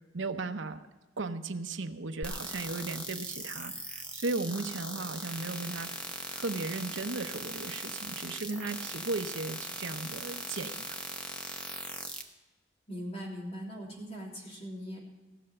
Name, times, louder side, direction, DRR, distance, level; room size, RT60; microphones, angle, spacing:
voice 1, 0.1-0.8 1.2-5.9 6.3-10.8, right 3 dB, 80° right, 7 dB, 0.8 m, -36 dB
sound 1, 2.2-12.2, equal, 5° left, 1.0 m, -40 dB
voice 2, 12.9-15.0, equal, 30° left, -2 dB, 3.2 m, -40 dB
16.5 x 6.7 x 8.7 m, 1.2 s
head